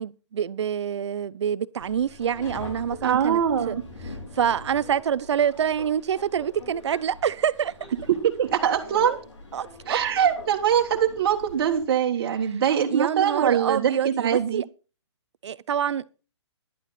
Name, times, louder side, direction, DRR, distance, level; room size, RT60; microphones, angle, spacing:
voice 1, 0.0-3.7 4.3-7.7 9.5-10.0 12.9-14.6 15.4-16.1, right 8 dB, 70° right, 0.7 m, -26 dB
Subway metro underground, 1.8-11.8, left 2 dB, 80° left, 5.1 m, -43 dB
voice 2, 3.0-3.8 8.1-9.2 9.9-14.6, right 8 dB, 50° right, 1.7 m, -23 dB
11.0 x 10.0 x 4.2 m
hypercardioid pair, 160°, 15 cm